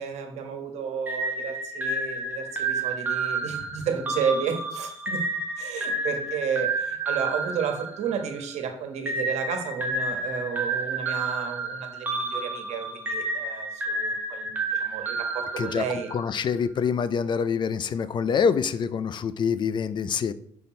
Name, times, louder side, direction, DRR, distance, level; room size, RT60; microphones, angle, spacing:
voice 1, 0.0-5.2 5.6-16.1, right 6 dB, 75° right, 6 dB, 1.4 m, -32 dB
sound 1, 1.1-8.5 9.1-16.3, right 2 dB, 15° right, 1.3 m, -30 dB
voice 2, 16.1-20.3, left 6 dB, 45° left, 15 dB, 0.4 m, -26 dB
6.0 x 5.5 x 4.3 m, 0.62 s
cardioid pair, 130°, 11 cm